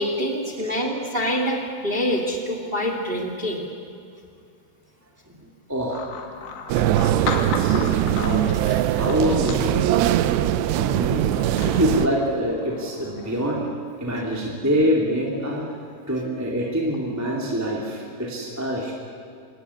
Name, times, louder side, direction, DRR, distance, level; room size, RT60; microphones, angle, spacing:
voice 1, 0.0-3.7 10.6-10.7, equal, 35° right, 3 dB, 0.9 m, -26 dB
voice 2, 5.7-6.0 7.4-8.4 8.9-10.2 10.8-11.2 11.6-13.6 14.0-15.7 16.1-18.9, equal, 5° right, -2 dB, 2.0 m, -25 dB
sound 1, 5.9-13.8, left 5 dB, 75° left, 3.9 m, -36 dB
sound 2, 6.7-12.1, right 12 dB, 90° right, 2.9 m, -21 dB
26.5 x 16.0 x 9.8 m, 2.4 s
omnidirectional pair, 4.8 m